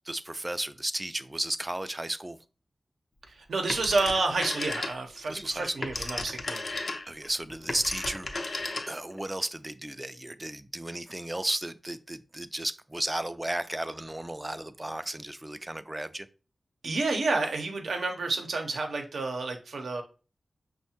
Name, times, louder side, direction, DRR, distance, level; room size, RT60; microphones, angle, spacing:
voice 1, 0.1-2.4 5.3-6.1 7.1-8.3 8.9-16.3, right 1 dB, 20° right, 0.3 m, -34 dB
voice 2, 3.3-6.6 16.8-20.0, right 3 dB, 90° right, 0.6 m, -29 dB
Telephone, 3.7-5.2 5.6-9.2, left 2 dB, 60° left, 0.6 m, -34 dB
5.5 x 2.1 x 2.8 m
cardioid pair, 50°, 0 cm